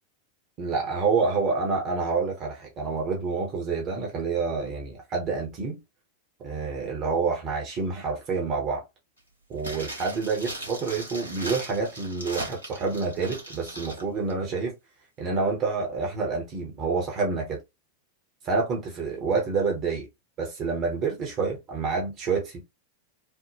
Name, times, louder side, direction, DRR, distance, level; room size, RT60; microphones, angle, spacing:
voice 1, 0.6-5.8 6.4-8.8 9.5-14.7 15.2-17.6 18.4-20.1 20.4-22.6, right 4 dB, 35° right, 1.0 m, -28 dB
sound 1, 9.6-14.0 14.3-14.4, right 1 dB, 85° right, 1.3 m, -38 dB
3.5 x 2.1 x 2.9 m
figure-of-eight pair, 90°, 0 cm